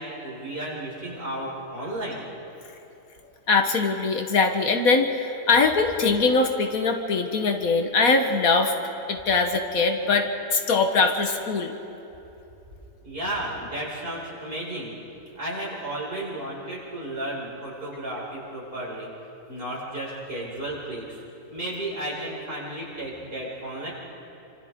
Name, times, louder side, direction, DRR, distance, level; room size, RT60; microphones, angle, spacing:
voice 1, 0.0-2.3 10.0-10.1 13.0-14.9 15.3-19.1 19.5-21.2 21.5-23.9, right 1 dB, 40° right, -7 dB, 6.0 m, -33 dB
voice 2, 3.5-8.7 9.1-11.8, left 4 dB, 70° left, 5 dB, 1.7 m, -22 dB
28.5 x 26.0 x 3.7 m, 3.0 s
omnidirectional pair, 1.5 m